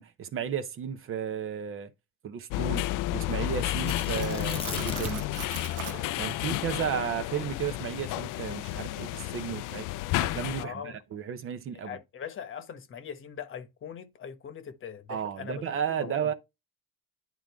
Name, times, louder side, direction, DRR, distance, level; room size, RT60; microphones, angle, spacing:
voice 1, 0.0-1.9 2.2-5.3 5.9-9.9 10.2-12.0 15.1-16.3, right 8 dB, 40° right, 0.8 m, -34 dB
sound 1, 2.5-10.6, left 16 dB, 70° left, 0.5 m, -31 dB
Cutlery silverware, 3.8-6.0, right 11 dB, 65° right, 1.0 m, -41 dB
Tearing, 4.0-5.4 5.7-5.8 6.3-8.7 9.4-9.9, left 4 dB, 15° left, 0.8 m, -38 dB
voice 2, 10.6-11.0 11.8-16.3, left 8 dB, 40° left, 1.1 m, -41 dB
10.5 x 3.8 x 3.5 m
cardioid pair, 135°, 33 cm